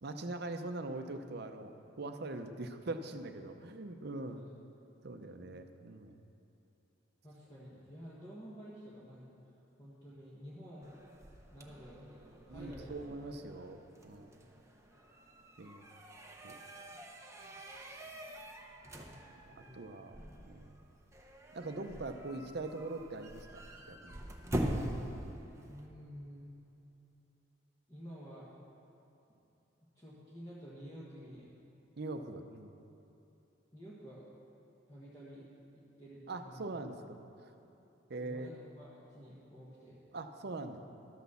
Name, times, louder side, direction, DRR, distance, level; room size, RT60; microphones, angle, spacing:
voice 1, 0.0-4.4 5.0-6.2 12.5-14.3 15.6-15.9 16.4-16.6 19.4-20.8 21.5-23.5 23.9-24.2 32.0-32.7 36.3-37.2 38.1-38.5 40.1-40.8, right 2 dB, 55° right, 7 dB, 0.6 m, -42 dB
voice 2, 7.2-9.3 9.8-10.9 11.5-13.3 19.5-19.8 20.1-20.2 25.7-26.4 27.9-28.5 29.9-31.5 33.7-34.2 34.9-35.5 35.7-36.7 37.4-37.6 38.2-40.0, equal, 20° left, -8 dB, 1.4 m, -51 dB
sound 1, 10.8-25.9, right 1 dB, 15° right, 0.7 m, -44 dB
12.0 x 6.2 x 6.9 m, 2.9 s
head